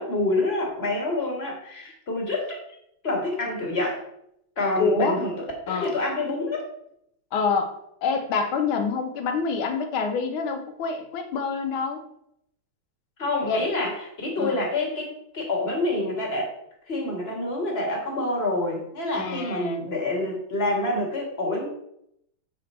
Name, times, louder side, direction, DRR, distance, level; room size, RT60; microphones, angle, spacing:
voice 1, 0.0-2.6 3.0-4.0 4.6-6.7 13.2-16.5 16.9-21.7, left 2 dB, 30° left, 0 dB, 1.7 m, -27 dB
voice 2, 4.7-5.2 5.7-6.0 7.3-12.0 13.4-13.6 14.4-14.7 19.1-19.8, left 5 dB, 85° left, 6 dB, 1.8 m, -26 dB
7.2 x 4.3 x 4.2 m, 0.75 s
omnidirectional pair, 2.2 m